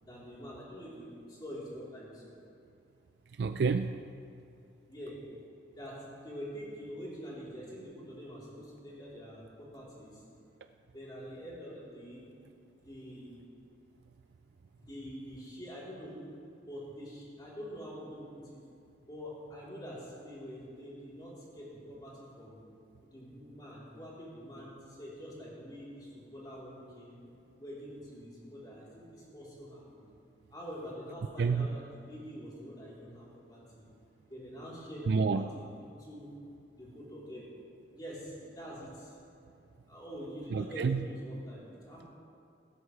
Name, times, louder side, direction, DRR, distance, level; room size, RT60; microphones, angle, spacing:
voice 1, 0.0-2.3 4.9-5.2 5.8-6.0 6.2-10.2 10.9-12.3 12.8-13.4 14.7-16.2 16.7-18.6 19.1-22.6 23.0-27.2 27.6-30.1 30.5-33.8 34.3-36.3 36.7-37.4 37.9-39.1 39.9-42.1, equal, 25° left, -7 dB, 3.6 m, -45 dB
voice 2, 3.4-4.0 31.4-31.7 35.1-35.4 40.5-41.0, right 5 dB, 65° right, 9 dB, 0.4 m, -28 dB
16.5 x 12.5 x 3.3 m, 2.5 s
head